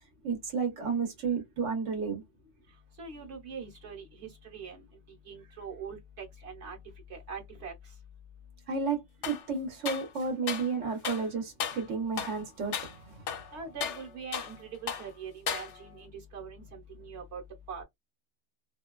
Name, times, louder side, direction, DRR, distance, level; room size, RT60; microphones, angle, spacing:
voice 1, 0.2-2.2 8.7-13.4, right 5 dB, 85° right, 1.3 m, -32 dB
voice 2, 3.0-4.8 5.3-6.8 7.1-7.7 13.5-17.4 17.7-17.8, right 5 dB, 70° right, 1.2 m, -42 dB
sound 1, 9.2-9.5 9.9-10.7 11.0-11.3 11.6-11.9 12.2-12.4 12.7-13.0 13.3-14.6 14.9-15.1 15.5-16.0, left 7 dB, 75° left, 0.9 m, -35 dB
2.8 x 2.2 x 2.3 m
omnidirectional pair, 1.2 m